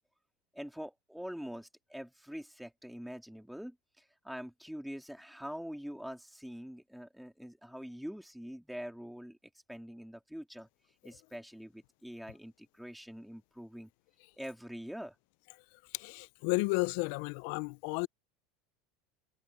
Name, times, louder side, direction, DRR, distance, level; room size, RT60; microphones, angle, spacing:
voice 1, 0.5-9.4 9.7-10.7 11.0-13.9 14.4-15.1, equal, ahead, 2.6 m, -44 dB
voice 2, 15.9-18.1, left 27 dB, 55° left, 0.3 m, -32 dB
supercardioid pair, 180°, 0 cm